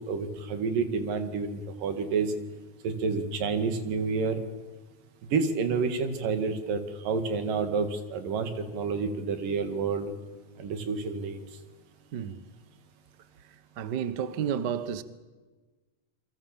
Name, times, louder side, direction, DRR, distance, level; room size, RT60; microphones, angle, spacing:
voice 1, 0.1-2.3 2.8-4.4 5.3-10.1 10.6-11.4, right 5 dB, 85° right, 3.8 m, -29 dB
voice 2, 12.1-12.4 13.8-15.0, right 8 dB, 60° right, 1.0 m, -31 dB
28.5 x 23.0 x 7.4 m
omnidirectional pair, 3.8 m